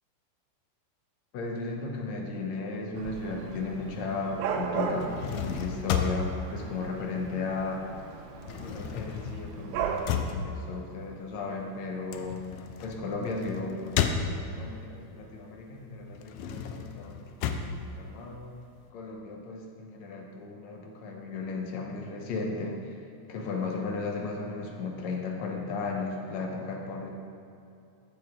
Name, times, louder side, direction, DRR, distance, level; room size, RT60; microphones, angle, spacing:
voice 1, 1.3-7.9 8.6-12.4 12.8-18.5 18.9-23.0 23.3-27.1, left 3 dB, 65° left, 1 dB, 1.9 m, -35 dB
Dog / Cat, 3.0-10.0, right 7 dB, 85° right, 2.5 m, -37 dB
sound 1, 4.9-7.7 8.0-14.8 15.3-18.8, left 7 dB, 85° left, 1.7 m, -34 dB
14.5 x 7.7 x 3.7 m, 2.7 s
omnidirectional pair, 4.1 m